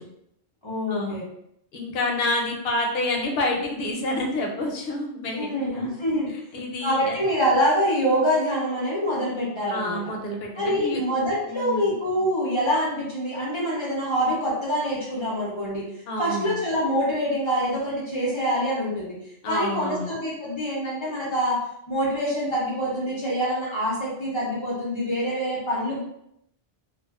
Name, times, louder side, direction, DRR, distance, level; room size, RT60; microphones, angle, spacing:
voice 1, 0.6-1.2 5.3-6.3 6.8-10.0 10.6-15.8 16.2-19.2 19.5-21.6 21.9-26.0, equal, 40° left, -5 dB, 0.4 m, -25 dB
voice 2, 1.7-5.9 6.5-7.2 9.7-11.0 11.5-11.9 16.1-16.6 19.4-20.1, left 1 dB, 65° left, 0 dB, 0.8 m, -28 dB
2.3 x 2.3 x 2.3 m, 0.77 s
omnidirectional pair, 1.2 m